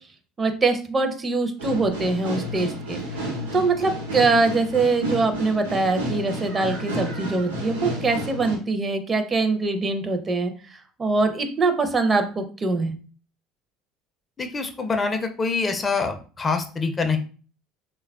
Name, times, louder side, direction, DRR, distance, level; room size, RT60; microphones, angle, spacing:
voice 1, 0.4-3.3 3.5-12.9, right 3 dB, 30° right, 7 dB, 0.5 m, -23 dB
sound 1, 1.6-8.6, equal, 85° right, 0.8 m, -31 dB
voice 2, 14.4-17.2, left 4 dB, 25° left, 6 dB, 0.4 m, -25 dB
3.2 x 2.2 x 2.3 m, 0.39 s
figure-of-eight pair, 65°, 0 cm